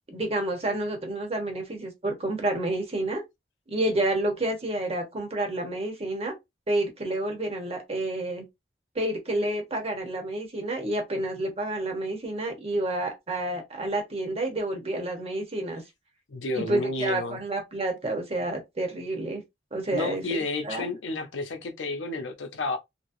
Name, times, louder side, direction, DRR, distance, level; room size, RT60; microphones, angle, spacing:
voice 1, 0.1-3.2 3.7-6.3 6.7-8.4 8.9-15.8 16.5-19.4 19.7-20.9, right 1 dB, 35° right, 1.1 m, -29 dB
voice 2, 16.3-17.4 19.9-22.8, left 2 dB, 85° left, 0.7 m, -31 dB
3.1 x 2.8 x 2.6 m
head